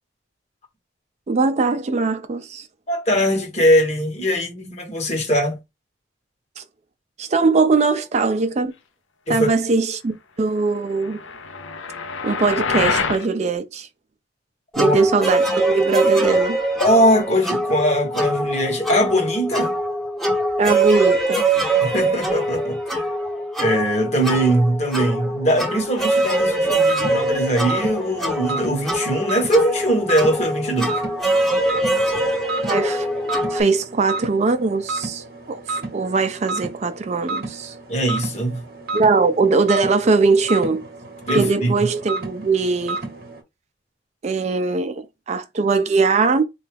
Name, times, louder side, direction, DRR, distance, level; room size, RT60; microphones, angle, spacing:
voice 1, 1.3-2.7 6.6-6.7 7.2-8.7 9.3-11.2 12.2-13.9 14.8-16.6 20.6-21.4 32.6-33.1 33.5-37.7 38.9-40.8 41.3-43.0 44.2-46.4, right 4 dB, 35° right, 0.4 m, -20 dB
voice 2, 2.9-5.6 9.3-9.5 14.7-14.9 16.8-19.7 21.8-23.1 23.6-30.9 37.9-38.6 41.3-41.7, equal, 35° left, 1.0 m, -21 dB
sound 1, 11.0-13.3, left 5 dB, 90° left, 0.5 m, -25 dB
sound 2, 14.7-33.6, right 1 dB, ahead, 0.7 m, -23 dB
sound 3, 26.9-43.4, right 3 dB, 50° right, 0.8 m, -32 dB
4.0 x 2.3 x 3.3 m
head